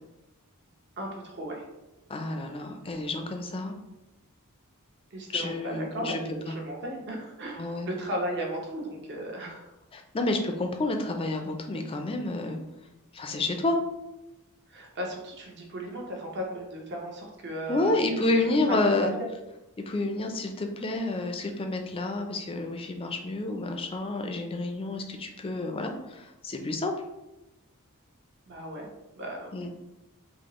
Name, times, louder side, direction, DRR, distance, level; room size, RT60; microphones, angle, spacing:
voice 1, 1.0-1.6 5.1-9.7 14.7-18.3 18.7-19.3 28.5-28.9 29.2-29.6, equal, 50° right, 0 dB, 0.8 m, -36 dB
voice 2, 2.1-3.7 5.3-6.2 6.5-6.6 7.6-7.9 9.9-12.6 13.1-13.8 17.7-19.1 19.9-26.9 29.5-29.7, left 2 dB, 25° left, 4 dB, 0.4 m, -29 dB
5.0 x 2.0 x 3.0 m, 0.95 s
head